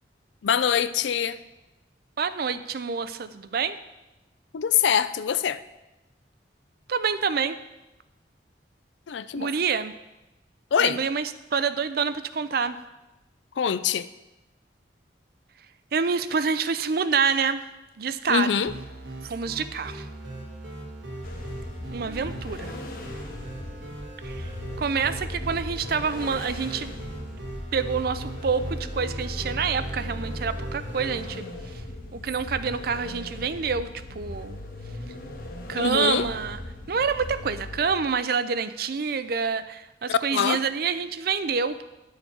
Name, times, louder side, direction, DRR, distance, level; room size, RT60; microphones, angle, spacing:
voice 1, 0.4-1.4 4.5-5.6 9.1-9.5 10.7-11.0 13.6-14.1 18.3-18.7 35.7-36.3 40.1-40.6, left 8 dB, 80° left, 14 dB, 0.4 m, -24 dB
voice 2, 2.2-3.8 6.9-7.6 9.3-9.9 10.8-12.8 15.9-17.6 18.0-18.5 19.2-20.1 21.9-22.7 24.2-24.5 24.8-26.9 27.7-31.5 32.1-34.6 35.7-36.6 36.9-41.8, right 5 dB, 55° right, 12 dB, 0.5 m, -27 dB
sound 1, 18.7-31.4, right 1 dB, 75° right, 1.7 m, -39 dB
sound 2, 21.2-37.9, left 1 dB, 50° left, 1.0 m, -38 dB
10.5 x 6.5 x 4.6 m, 1.0 s
head